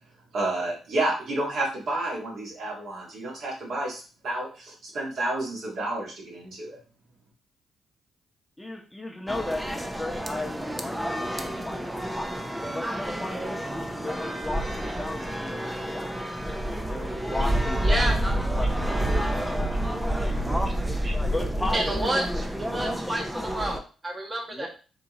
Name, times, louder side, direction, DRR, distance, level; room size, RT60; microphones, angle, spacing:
voice 1, 0.3-6.8, right 2 dB, 70° right, -4 dB, 2.0 m, -30 dB
voice 2, 8.6-12.3 12.7-13.7 14.0-16.1 16.9-20.7 21.3-21.8 24.5-24.7, left 1 dB, 15° left, 1 dB, 1.1 m, -36 dB
sound 1, 9.3-23.8, right 1 dB, 10° right, 0.7 m, -29 dB
voice 3, 17.8-18.2 21.0-21.1 21.7-22.5 22.7-24.7, right 1 dB, 25° right, 1 dB, 1.3 m, -29 dB
4.2 x 2.9 x 3.8 m, 0.37 s
hypercardioid pair, 50°, 0 cm